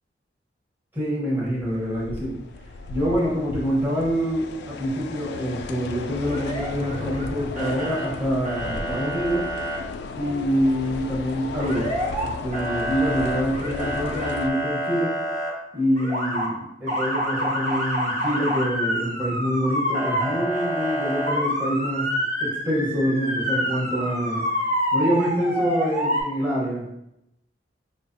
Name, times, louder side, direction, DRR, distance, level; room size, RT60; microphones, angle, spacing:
voice 1, 0.9-2.4 2.9-9.5 10.1-11.9 12.2-15.2 15.7-22.1 22.4-24.4 24.9-26.9, equal, 10° right, -8 dB, 0.9 m, -26 dB
sound 1, 1.4-14.5, left 4 dB, 65° left, 0.3 m, -35 dB
Motor vehicle (road) / Siren, 6.3-7.3 7.6-8.1 8.4-9.8 11.6-12.3 12.5-15.5 16.0-16.5 16.9-26.2, equal, 45° right, 1.1 m, -27 dB
4.7 x 2.4 x 2.6 m, 0.82 s
head